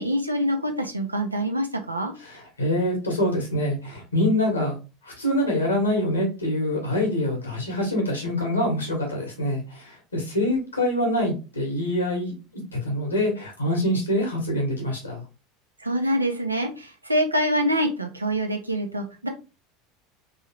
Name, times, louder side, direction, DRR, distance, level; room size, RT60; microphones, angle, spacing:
voice 1, 0.0-2.1 15.8-19.3, equal, 85° right, 4 dB, 0.8 m, -25 dB
voice 2, 2.2-4.8 5.0-12.3 12.7-15.2, left 1 dB, 80° left, 0 dB, 1.7 m, -25 dB
3.6 x 3.4 x 3.0 m, 0.30 s
figure-of-eight pair, 75°, 0 cm